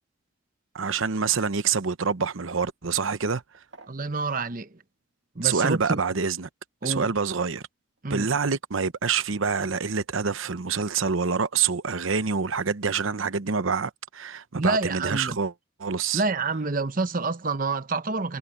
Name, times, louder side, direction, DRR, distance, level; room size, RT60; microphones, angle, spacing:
voice 1, 0.7-3.4 5.4-6.5 6.8-7.6 8.1-15.5 15.8-16.2, right 5 dB, 85° right, 0.9 m, -26 dB
sound 1, 2.7-8.8 9.1-9.4, right 4 dB, 65° right, 1.8 m, -53 dB
voice 2, 3.9-4.8 5.3-6.0 6.8-7.1 8.0-8.3 14.5-15.4 16.1-18.4, right 3 dB, 45° right, 0.9 m, -27 dB
head